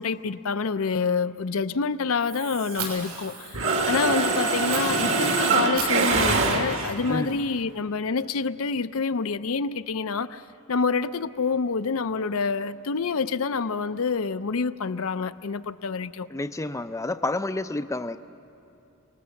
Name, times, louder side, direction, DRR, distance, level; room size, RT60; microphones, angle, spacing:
voice 1, 0.0-10.4 10.7-16.3, left 4 dB, 70° left, 0.6 m, -27 dB
Mechanisms, 2.3-3.2 3.5-7.1, right 4 dB, 65° right, 2.1 m, -24 dB
Fire, 2.7-2.9 4.7-4.8 5.8-7.7, right 6 dB, 85° right, 6.4 m, -36 dB
voice 2, 7.1-7.4 16.3-18.2, left 2 dB, 15° left, 0.5 m, -29 dB
29.5 x 19.5 x 7.1 m
head